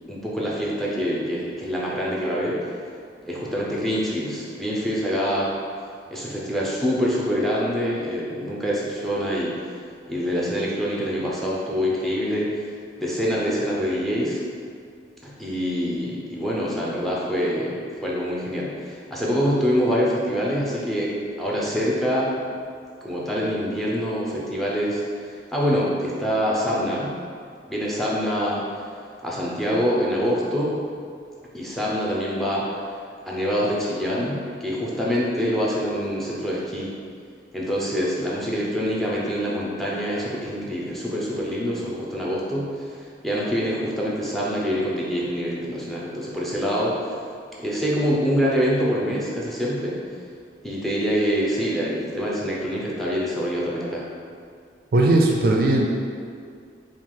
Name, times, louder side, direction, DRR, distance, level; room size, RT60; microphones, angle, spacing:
voice 1, 0.1-2.9 3.2-5.5 6.1-9.6 10.1-12.6 13.0-14.4 15.2-22.3 23.0-27.1 27.7-28.6 29.2-30.8 31.5-32.8 33.3-36.9 37.5-47.3 47.6-50.0 50.6-54.1, equal, ahead, -5 dB, 0.5 m, -25 dB
voice 2, 54.9-55.9, right 2 dB, 55° right, 0 dB, 0.4 m, -18 dB
4.7 x 2.4 x 3.7 m, 2.2 s
head